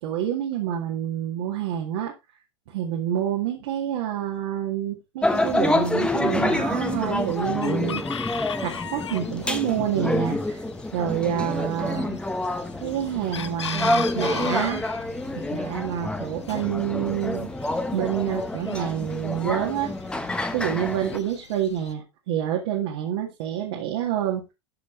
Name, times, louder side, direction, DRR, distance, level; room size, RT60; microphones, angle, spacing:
voice 1, 0.0-2.1 2.7-8.0 8.6-10.6 10.9-12.2 12.8-14.9 15.3-17.5 17.9-19.9 20.5-24.5, right 10 dB, 65° right, -1 dB, 2.0 m, -28 dB
sound 1, 5.2-21.2, left 1 dB, 5° left, 1.1 m, -28 dB
Chicken rooster, 5.3-21.9, left 7 dB, 85° left, 0.8 m, -39 dB
12.5 x 5.4 x 3.2 m, 0.24 s
hypercardioid pair, 90°, 14 cm